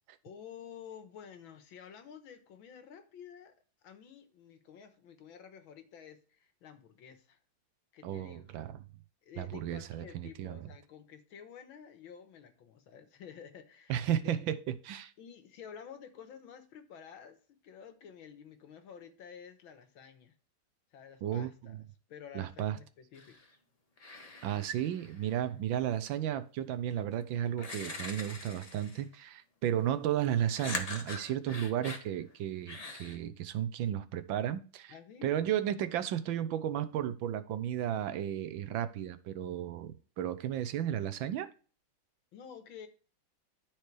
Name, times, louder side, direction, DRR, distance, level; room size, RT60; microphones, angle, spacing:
voice 1, 0.2-3.5 3.8-7.4 7.9-8.5 9.2-14.4 15.2-20.3 20.9-21.8 22.1-23.4 24.8-25.0 34.9-35.3 42.3-42.9, left 7 dB, 75° left, 1.9 m, -51 dB
voice 2, 8.0-8.8 9.4-10.6 13.9-15.1 21.2-21.8 22.3-22.8 24.4-34.9 35.2-41.5, right 10 dB, 75° right, 1.4 m, -34 dB
sound 1, 23.1-23.5 24.0-25.4 26.9-27.0 27.6-29.1 30.6-32.1 32.7-33.2, left 2 dB, 25° left, 0.9 m, -42 dB
13.0 x 4.5 x 3.3 m
omnidirectional pair, 2.3 m